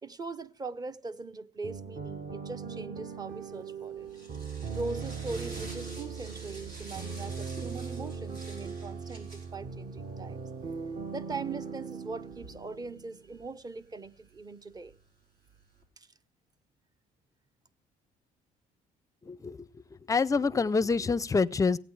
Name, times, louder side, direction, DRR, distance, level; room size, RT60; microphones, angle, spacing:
voice 1, 0.0-4.1 4.7-10.5 11.1-15.0 16.0-16.1, right 3 dB, 25° right, 0.7 m, -41 dB
sound 1, 1.6-13.3, right 5 dB, 40° right, 1.1 m, -39 dB
sound 2, 3.4-15.8, right 2 dB, 70° right, 4.2 m, -51 dB
voice 2, 19.2-19.7 20.1-21.8, left 4 dB, 20° left, 0.5 m, -26 dB
16.0 x 8.9 x 4.6 m
cardioid pair, 110°, 17 cm